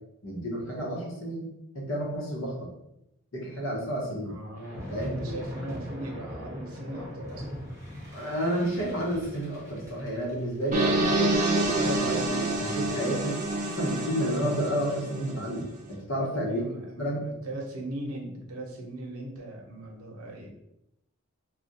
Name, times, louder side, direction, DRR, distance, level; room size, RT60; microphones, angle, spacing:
voice 1, 0.2-1.5 1.7-2.7 3.3-4.3 4.9-5.4 8.1-13.4 13.7-16.6 17.0-17.3, equal, 65° left, -3 dB, 1.0 m, -31 dB
voice 2, 4.2-7.5 16.4-20.5, right 1 dB, 85° right, 0 dB, 0.8 m, -39 dB
sound 1, 4.6-15.1, equal, 15° right, 0.8 m, -42 dB
sound 2, 10.7-15.6, right 2 dB, 35° right, 0.5 m, -28 dB
2.4 x 2.3 x 4.0 m, 0.85 s
head